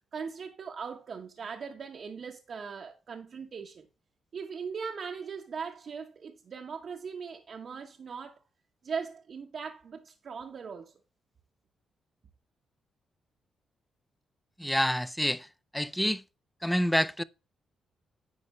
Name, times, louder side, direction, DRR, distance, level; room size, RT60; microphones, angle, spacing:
voice 1, 0.1-3.9 4.3-8.4 8.8-10.9, right 6 dB, 55° right, 0.9 m, -39 dB
voice 2, 14.6-15.5 15.7-16.2 16.6-17.2, equal, 5° left, 0.5 m, -27 dB
9.8 x 4.7 x 5.4 m
cardioid pair, 90°, 0 cm